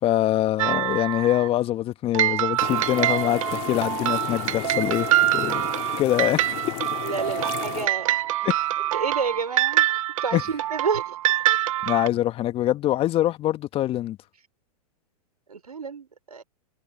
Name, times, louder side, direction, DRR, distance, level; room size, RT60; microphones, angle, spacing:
voice 1, 0.0-5.1 5.3-5.7 6.0-6.4 8.4-8.6 10.3-10.4 11.8-14.2, left 13 dB, 30° left, 1.7 m, -24 dB
sound 1, 0.6-1.5 2.1-12.1, right 14 dB, 60° right, 0.6 m, -25 dB
sound 2, 2.6-7.9, left 34 dB, 45° left, 2.8 m, -34 dB
voice 2, 5.6-6.4 7.0-8.5 8.9-9.9 10.2-11.4 15.5-16.4, right 5 dB, 85° right, 5.1 m, -31 dB
hypercardioid pair, 110°, 19 cm